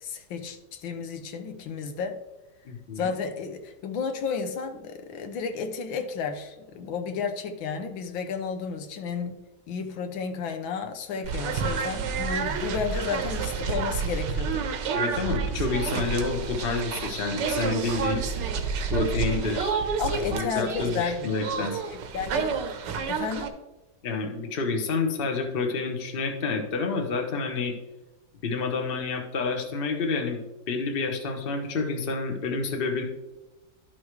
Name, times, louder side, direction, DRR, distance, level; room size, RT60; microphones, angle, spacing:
voice 1, 0.0-2.2 3.0-9.4 9.7-14.7 20.0-22.6 23.1-23.5, left 5 dB, 85° left, 6 dB, 1.7 m, -32 dB
voice 2, 2.6-3.1 14.9-18.2 18.9-19.9 20.3-21.8 24.0-27.7 28.4-30.4 30.7-33.0, left 4 dB, 35° left, 3 dB, 1.0 m, -29 dB
sound 1, 11.2-23.5, right 5 dB, 70° right, 1.4 m, -29 dB
12.0 x 5.9 x 3.2 m, 1.0 s
omnidirectional pair, 2.1 m